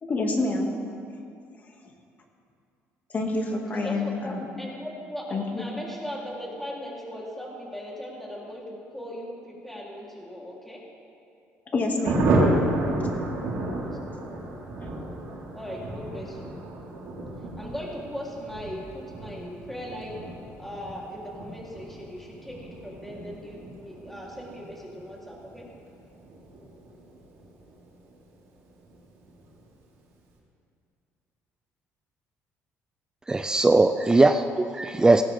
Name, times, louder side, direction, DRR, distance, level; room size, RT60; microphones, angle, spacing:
voice 1, 0.0-0.7 3.1-4.5 5.3-5.7 11.7-12.3 13.0-13.1 14.8-14.9, left 2 dB, 35° left, 1 dB, 2.3 m, -27 dB
voice 2, 3.7-10.8 15.5-16.5 17.6-20.2 20.6-25.7, equal, 5° left, -4 dB, 3.5 m, -38 dB
Thunder, 12.0-28.2 28.4-28.5 28.8-29.0 29.2-29.6, right 2 dB, 80° right, 4.3 m, -31 dB
voice 3, 33.3-35.2, right 2 dB, 15° right, 9 dB, 0.4 m, -20 dB
18.5 x 16.5 x 3.6 m, 2.4 s
cardioid pair, 120°, 5 cm